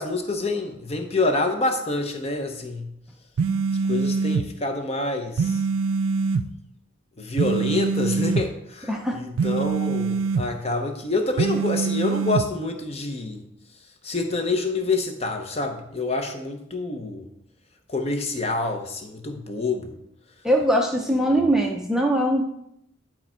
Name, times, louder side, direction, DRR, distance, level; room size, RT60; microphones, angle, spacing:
voice 1, 0.0-2.9 3.9-5.6 7.2-13.4 14.0-17.2 17.9-20.0 21.1-21.4, left 3 dB, 30° left, 5 dB, 0.8 m, -27 dB
sound 1, 3.4-4.5 5.4-6.5 7.4-8.5 9.4-10.5 11.4-12.5, right 5 dB, 80° right, 0.4 m, -24 dB
voice 2, 8.9-9.2 20.4-22.4, right 1 dB, 5° right, 1 dB, 0.6 m, -21 dB
10.5 x 4.4 x 4.4 m, 0.77 s
head